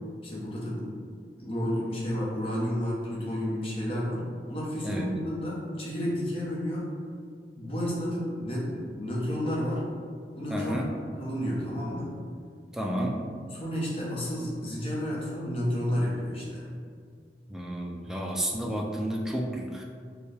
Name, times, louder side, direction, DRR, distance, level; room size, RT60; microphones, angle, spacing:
voice 1, 0.2-0.9 1.4-6.9 7.6-9.8 10.4-10.8 11.2-12.1 13.5-16.7, equal, 35° left, -5 dB, 0.8 m, -31 dB
voice 2, 4.8-5.2 10.5-10.9 12.7-13.2 17.5-19.8, equal, 5° right, -1 dB, 0.3 m, -31 dB
4.3 x 2.2 x 3.3 m, 2.1 s
head